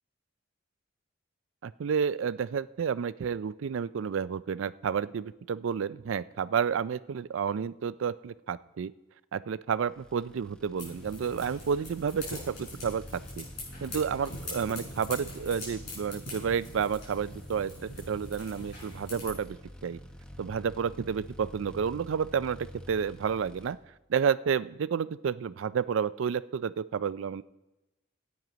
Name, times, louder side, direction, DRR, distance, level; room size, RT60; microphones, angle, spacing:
voice 1, 1.6-8.9 9.3-13.4 13.8-19.6 19.8-20.0 20.4-23.8 24.1-27.4, right 7 dB, 65° right, 17 dB, 0.4 m, -30 dB
sound 1, 9.9-23.7, left 1 dB, 5° left, 0.8 m, -48 dB
sound 2, 10.8-19.3, left 2 dB, 55° left, 5.3 m, -43 dB
13.5 x 9.2 x 5.1 m, 1.0 s
head